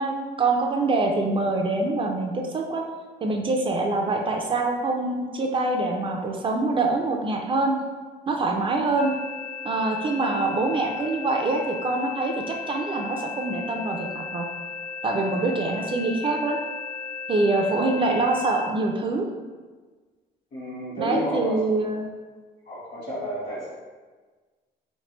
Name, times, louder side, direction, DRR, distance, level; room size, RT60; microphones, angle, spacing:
voice 1, 0.0-2.8 3.2-7.8 8.3-9.1 9.6-14.5 15.0-16.6 17.3-19.2 21.0-22.0, right 2 dB, 30° right, 2 dB, 0.4 m, -25 dB
sound 1, 9.0-18.7, left 5 dB, 85° left, 0.8 m, -36 dB
voice 2, 20.5-21.6 22.6-23.7, equal, 55° left, -10 dB, 1.2 m, -31 dB
3.2 x 3.1 x 3.0 m, 1.4 s
cardioid pair, 110°, 17 cm